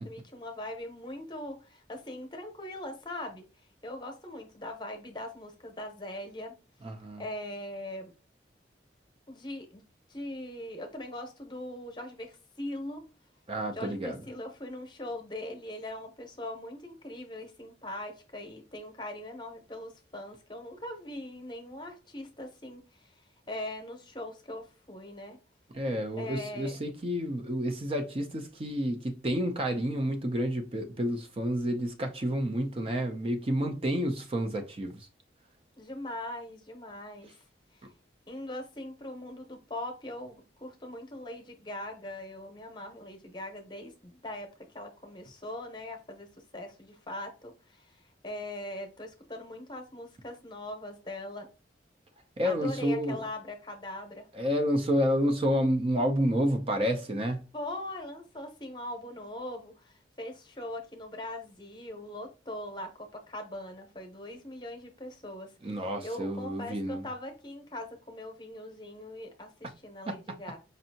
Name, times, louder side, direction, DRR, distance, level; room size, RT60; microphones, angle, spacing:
voice 1, 0.0-3.4 3.8-6.6 7.2-8.1 9.3-9.8 10.1-13.0 13.7-23.1 23.5-25.4 26.2-26.8 35.8-37.3 37.7-37.8 38.3-46.3 46.5-51.5 52.4-54.3 57.5-70.6, left 1 dB, 25° left, 0.8 m, -41 dB
voice 2, 6.8-7.2 13.5-14.2 25.7-35.1 52.4-53.2 54.3-57.4 65.6-67.0 70.1-70.2, equal, 30° right, 0.5 m, -29 dB
5.2 x 2.6 x 2.7 m
head